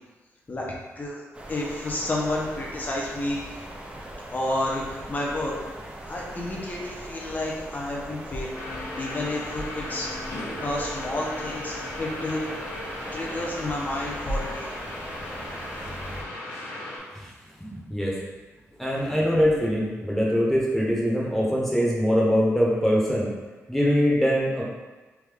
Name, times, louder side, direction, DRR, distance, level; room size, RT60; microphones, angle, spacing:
voice 1, 0.5-1.2 1.5-3.4 4.3-5.6 6.1-8.5 9.0-10.1 10.6-12.4 13.1-14.7, left 1 dB, 35° left, -3 dB, 0.8 m, -30 dB
sound 1, 1.3-16.2, right 1 dB, 20° right, 0.6 m, -40 dB
sound 2, 8.5-17.0, left 1 dB, 65° left, 1.0 m, -36 dB
voice 2, 17.7-18.1 18.8-23.3 23.7-24.6, equal, 5° left, -5 dB, 1.0 m, -23 dB
3.5 x 2.5 x 3.5 m, 1.2 s
cardioid pair, 95°, 5 cm